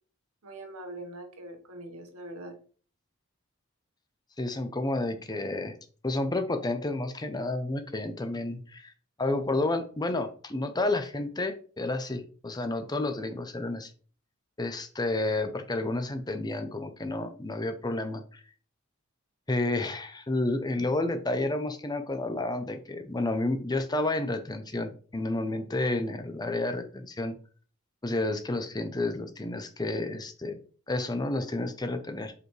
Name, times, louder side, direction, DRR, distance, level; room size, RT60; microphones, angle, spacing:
voice 1, 0.4-2.5, right 1 dB, 90° right, 4 dB, 1.5 m, -42 dB
voice 2, 4.4-5.7 6.0-8.9 9.2-13.9 14.6-18.4 19.5-27.4 28.0-30.6 30.9-32.3, left 2 dB, 20° left, 8 dB, 0.7 m, -30 dB
7.9 x 4.9 x 3.3 m, 0.42 s
head